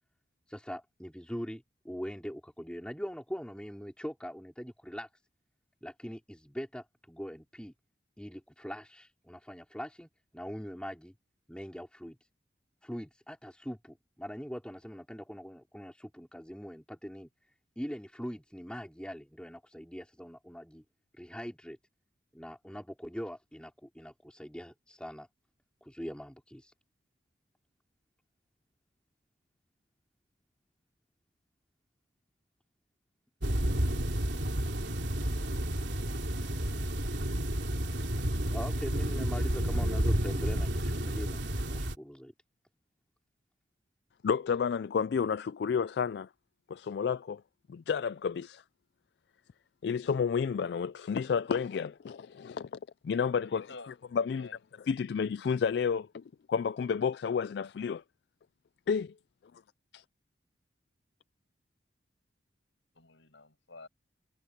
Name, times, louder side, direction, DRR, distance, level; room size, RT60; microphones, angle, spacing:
voice 1, 0.5-5.1 5.8-7.7 8.2-11.1 11.5-12.2 12.8-17.3 17.8-20.8 21.2-21.8 22.3-25.3 25.8-26.7 38.5-41.4 41.7-42.3, equal, 5° left, 4.8 m, -42 dB
sound 1, 33.4-42.0, right 1 dB, 70° right, 3.1 m, -31 dB
voice 2, 44.2-46.3 46.9-47.4 47.9-48.5 49.8-52.6 53.1-53.6 54.2-54.5 54.9-56.0 56.5-58.0 58.9-59.1, left 6 dB, 60° left, 0.3 m, -30 dB
voice 3, 53.4-54.6 62.9-63.9, left 3 dB, 85° left, 5.8 m, -51 dB
head